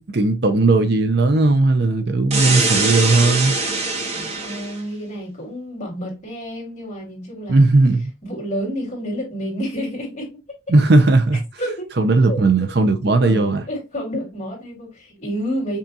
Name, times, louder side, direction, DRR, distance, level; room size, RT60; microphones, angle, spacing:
voice 1, 0.1-3.6 7.5-8.1 10.7-11.4 12.0-13.6, right 3 dB, 55° right, 0.6 m, -16 dB
sound 1, 2.3-4.8, right 3 dB, 35° right, 0.9 m, -22 dB
voice 2, 4.1-7.7 8.2-10.3 11.6-11.9 12.3-12.4 13.2-15.8, equal, 35° left, 2.2 m, -29 dB
5.5 x 2.4 x 2.7 m
head